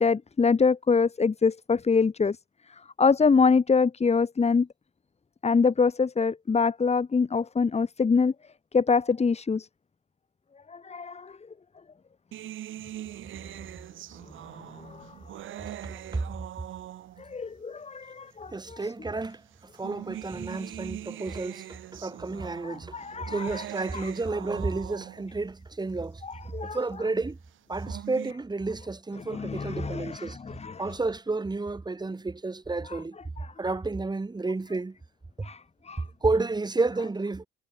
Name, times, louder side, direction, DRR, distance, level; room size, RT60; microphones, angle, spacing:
voice 1, 0.0-2.4 3.0-4.7 5.4-8.3 8.7-9.7 10.7-11.3 14.8-15.1 17.2-18.9 22.6-23.7 23.9-24.1 26.2-26.8 29.1-30.9 32.8-33.8 35.4-35.6 35.8-36.0, left 5 dB, 35° left, 3.2 m, -25 dB
sound 1, 12.3-17.4 18.3-18.4 19.5-25.4 27.6-28.3, right 13 dB, 80° right, 4.1 m, -42 dB
voice 2, 15.8-16.2 18.5-19.4 19.8-26.2 26.7-27.4 27.7-30.4 30.8-33.2 33.6-34.9 35.4-35.5 36.2-37.5, right 3 dB, 20° right, 4.1 m, -31 dB
cardioid pair, 90°, 20 cm